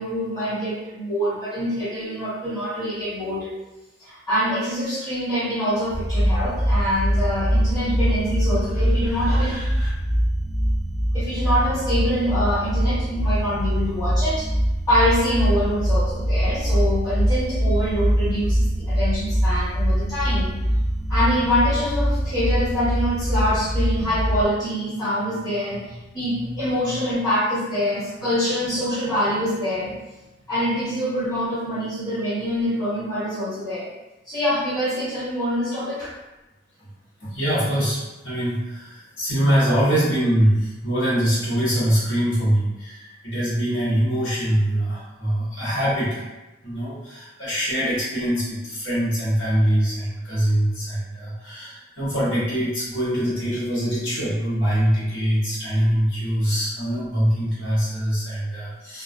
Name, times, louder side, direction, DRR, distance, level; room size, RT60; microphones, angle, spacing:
voice 1, 0.0-3.4 4.0-9.9 11.1-14.5 14.9-20.5 21.1-29.9 30.5-33.9 34.3-36.1, equal, 20° left, -12 dB, 1.1 m, -25 dB
sound 1, 5.9-24.5, equal, 5° left, 0.4 m, -23 dB
voice 2, 37.2-46.3 46.6-59.0, equal, 80° left, -10 dB, 1.1 m, -23 dB
2.2 x 2.2 x 2.5 m, 1.0 s
head